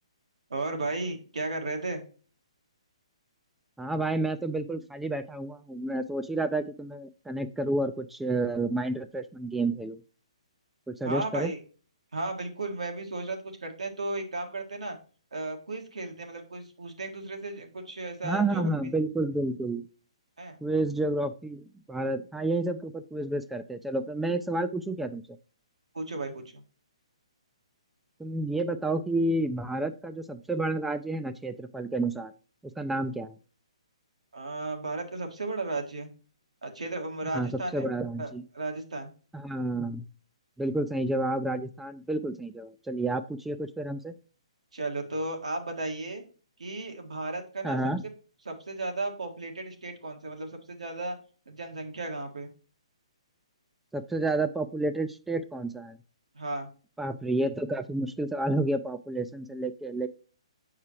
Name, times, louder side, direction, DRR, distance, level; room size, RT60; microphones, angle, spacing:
voice 1, 0.5-2.0 11.0-11.6 12.1-15.0 15.3-18.7 20.4-20.6 25.9-26.6 34.3-36.1 36.6-37.9 38.2-39.1 44.7-46.2 46.6-47.8 48.4-51.2 51.4-52.5 56.3-56.7, right 2 dB, 85° right, 3 dB, 1.7 m, -34 dB
voice 2, 3.8-10.0 10.9-11.5 18.2-19.9 20.6-25.2 28.2-32.3 32.6-33.3 37.3-38.4 39.3-40.0 40.6-44.1 47.6-48.0 53.9-56.0 57.0-60.1, right 2 dB, 5° right, 10 dB, 0.3 m, -30 dB
7.2 x 4.8 x 2.9 m, 0.38 s
hypercardioid pair, 140°, 3 cm